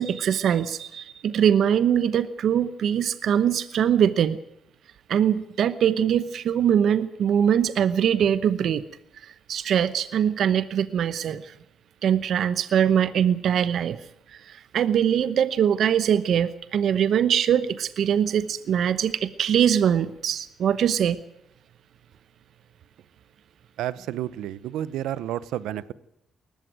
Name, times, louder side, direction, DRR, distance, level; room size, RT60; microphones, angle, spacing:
voice 1, 0.0-4.4 5.1-8.8 9.2-11.5 12.0-14.0 14.3-21.2, right 9 dB, 65° right, 14 dB, 0.9 m, -22 dB
voice 2, 23.8-25.9, right 12 dB, 90° right, 18 dB, 0.8 m, -30 dB
20.0 x 14.0 x 9.4 m, 0.80 s
cardioid pair, 90°, 0 cm